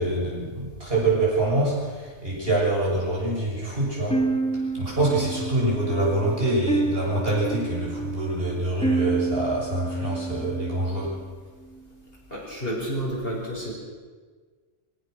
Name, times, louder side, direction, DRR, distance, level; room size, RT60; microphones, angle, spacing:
voice 1, 0.0-4.2 4.5-11.2, right 2 dB, 55° right, -4 dB, 7.1 m, -25 dB
sound 1, 4.1-11.2, right 3 dB, 5° left, 1.6 m, -29 dB
voice 2, 12.3-13.7, equal, 50° left, -3 dB, 6.1 m, -30 dB
23.0 x 17.5 x 6.5 m, 1.5 s
omnidirectional pair, 1.2 m